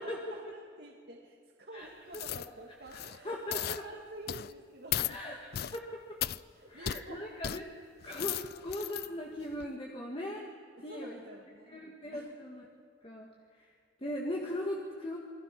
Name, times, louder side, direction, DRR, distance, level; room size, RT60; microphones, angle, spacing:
voice 1, 0.0-5.4 6.5-7.3 10.8-12.3, right 2 dB, 60° right, 0 dB, 2.2 m, -49 dB
sound 1, 2.1-2.5 2.9-3.2 3.5-3.8 4.3-4.5 4.9-5.2 5.5-5.8 6.2-6.4 6.9-7.0 7.4-7.6 8.0-9.1 9.5-9.7, left 11 dB, 55° left, 0.5 m, -35 dB
voice 2, 3.2-3.8 5.1-5.4 5.7-6.2 6.7-7.6 8.0-10.5 10.8-11.2 11.7-12.6 13.0-13.3 14.0-15.2, left 1 dB, 30° left, -1 dB, 2.0 m, -39 dB
27.5 x 20.5 x 6.1 m, 2.1 s
head